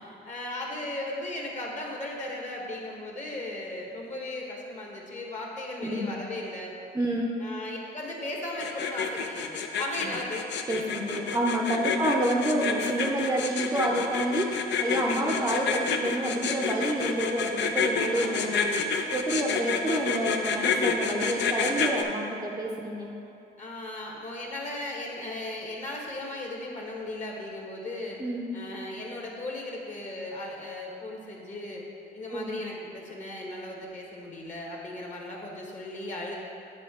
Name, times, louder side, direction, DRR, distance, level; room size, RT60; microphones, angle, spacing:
voice 1, 0.2-6.7 7.4-10.9 11.7-12.1 15.1-15.5 18.1-18.6 19.4-19.9 23.6-28.2 28.5-31.8 32.1-36.4, left 1 dB, 40° left, -2 dB, 1.2 m, -37 dB
voice 2, 5.8-6.2 6.9-7.3 10.0-10.1 10.7-23.1 28.2-28.4 32.3-32.6, right 1 dB, 15° right, -3 dB, 0.6 m, -28 dB
sound 1, 8.6-22.0, left 6 dB, 65° left, 0.5 m, -28 dB
9.3 x 3.7 x 3.6 m, 2.7 s
cardioid pair, 90°, 20 cm